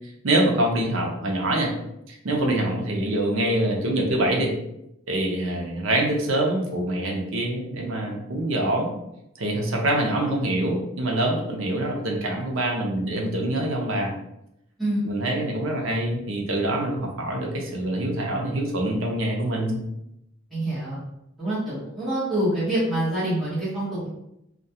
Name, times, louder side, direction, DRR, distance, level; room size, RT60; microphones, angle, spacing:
voice 1, 0.2-1.7 2.1-4.5 5.1-8.9 9.4-14.1 15.0-19.8, right 1 dB, 85° right, 0 dB, 0.6 m, -25 dB
voice 2, 20.5-21.0 21.4-24.1, right 1 dB, ahead, -13 dB, 0.9 m, -26 dB
2.2 x 2.2 x 2.7 m, 0.83 s
head